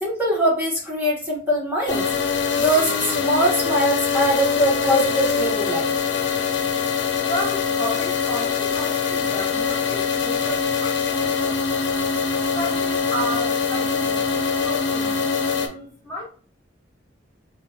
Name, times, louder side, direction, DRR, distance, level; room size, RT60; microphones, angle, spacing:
voice 1, 0.0-2.0 2.5-5.9, equal, 10° right, -5 dB, 1.1 m, -22 dB
sound 1, 1.9-15.7, left 6 dB, 65° left, 0.6 m, -23 dB
voice 2, 6.7-11.9 12.3-16.2, equal, 20° left, -5 dB, 1.2 m, -33 dB
3.9 x 2.9 x 2.3 m, 0.40 s
head